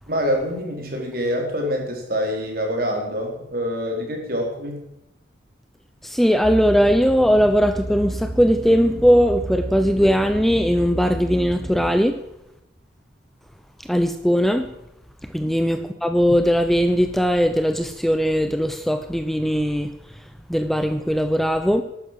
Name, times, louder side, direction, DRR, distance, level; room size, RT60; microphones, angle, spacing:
voice 1, 0.1-4.8, equal, 50° right, 1 dB, 4.3 m, -26 dB
voice 2, 6.0-12.2 13.8-14.7 15.2-21.8, equal, ahead, 8 dB, 0.7 m, -19 dB
sound 1, 6.4-11.9, right 1 dB, 30° right, 3.2 m, -32 dB
13.5 x 12.0 x 7.7 m, 0.85 s
head